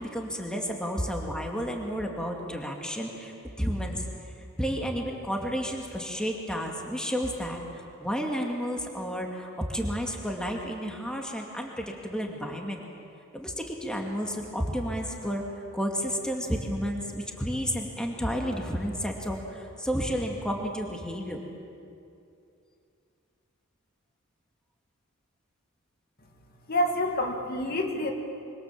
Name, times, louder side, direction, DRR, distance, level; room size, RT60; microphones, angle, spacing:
voice 1, 0.0-4.1 4.4-12.8 13.3-15.4 15.7-21.4, equal, 5° left, 1 dB, 2.3 m, -31 dB
voice 2, 26.7-28.1, left 1 dB, 45° left, 3 dB, 2.1 m, -27 dB
26.0 x 24.5 x 7.5 m, 2.6 s
head